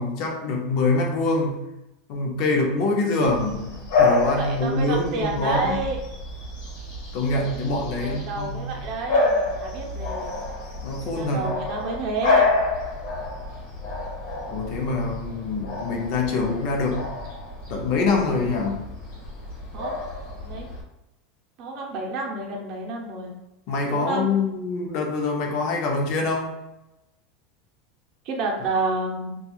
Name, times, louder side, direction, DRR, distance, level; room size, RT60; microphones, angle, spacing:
voice 1, 0.0-1.6 2.1-5.8 7.1-8.7 10.8-11.5 14.5-17.1 17.7-18.8 23.7-26.5, left 3 dB, 55° left, 1 dB, 0.6 m, -25 dB
Bark / Bird vocalization bird call bird song, 3.3-20.8, left 3 dB, 75° left, 1.1 m, -28 dB
voice 2, 4.4-6.0 8.0-10.3 11.0-12.5 19.7-19.9 20.4-20.7 21.6-23.4 23.9-24.3 28.2-29.4, right 3 dB, 50° right, 0 dB, 0.7 m, -30 dB
2.9 x 2.3 x 2.3 m, 0.93 s
supercardioid pair, 140°, 0 cm